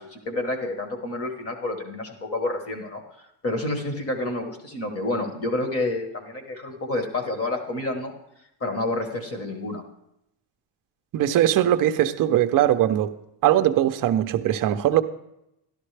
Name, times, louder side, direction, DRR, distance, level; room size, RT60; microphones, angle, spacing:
voice 1, 0.0-8.1 8.6-9.8, left 2 dB, 30° left, 5 dB, 1.3 m, -29 dB
voice 2, 11.1-13.1 13.4-15.0, right 12 dB, 45° right, 9 dB, 0.6 m, -20 dB
12.5 x 12.0 x 3.3 m, 0.82 s
cardioid pair, 170°, 47 cm